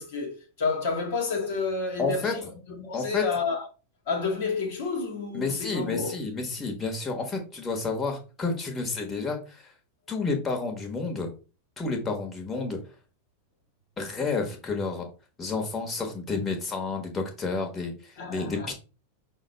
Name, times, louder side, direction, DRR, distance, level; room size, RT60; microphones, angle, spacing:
voice 1, 0.0-3.7 4.1-6.1 18.2-18.7, left 4 dB, 55° left, 1.0 m, -30 dB
voice 2, 2.0-2.3 2.9-3.2 5.3-9.6 10.1-11.3 11.8-12.8 14.0-15.0 15.4-18.7, left 4 dB, 20° left, 1.1 m, -30 dB
5.7 x 2.2 x 4.0 m
figure-of-eight pair, 90°, 0 cm